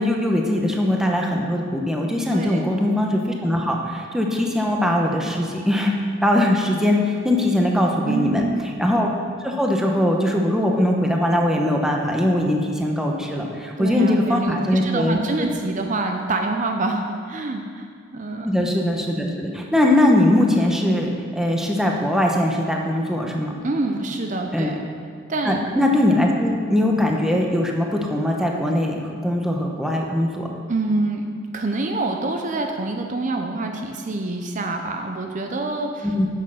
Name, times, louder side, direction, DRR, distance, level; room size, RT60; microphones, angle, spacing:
voice 1, 0.0-5.9 6.2-8.4 8.8-9.1 9.4-15.5 18.4-23.5 24.5-24.7 25.4-30.5 36.0-36.3, left 1 dB, 5° right, 0 dB, 0.9 m, -21 dB
voice 2, 2.3-2.7 8.1-8.6 13.8-17.9 18.1-18.5 23.6-24.8 25.3-25.6 30.7-31.3 31.5-36.1, right 2 dB, 40° right, 3 dB, 0.6 m, -26 dB
9.8 x 6.7 x 6.4 m, 2.1 s
head